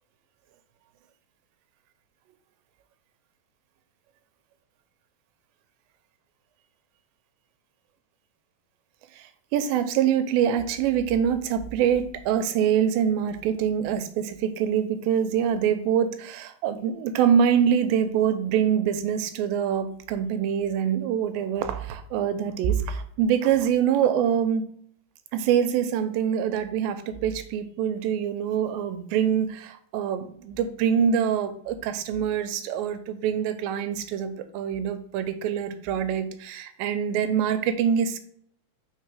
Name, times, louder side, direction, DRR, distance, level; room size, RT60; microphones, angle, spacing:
voice 1, 9.2-24.6 25.3-38.2, right 8 dB, 90° right, 10 dB, 2.4 m, -25 dB
4.5 x 4.3 x 4.8 m, 0.66 s
omnidirectional pair, 4.0 m